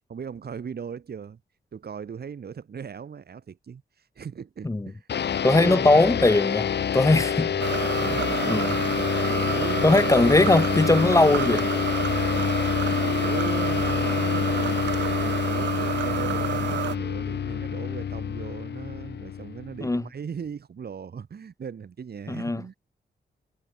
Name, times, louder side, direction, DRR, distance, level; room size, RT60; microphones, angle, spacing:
voice 1, 0.1-1.4 1.7-5.1 5.4-5.8 7.1-7.6 8.0-8.4 9.4-9.9 12.0-12.5 13.1-22.8, right 7 dB, 60° right, 2.6 m, -38 dB
sound 1, 5.1-19.9, left 8 dB, 70° left, 1.3 m, -27 dB
voice 2, 5.4-7.5 8.5-8.8 9.8-11.7 19.8-20.0 22.3-22.6, left 2 dB, 15° left, 1.3 m, -20 dB
sound 2, 7.6-17.0, right 11 dB, 80° right, 0.4 m, -30 dB
wide cardioid pair, 105°, 18 cm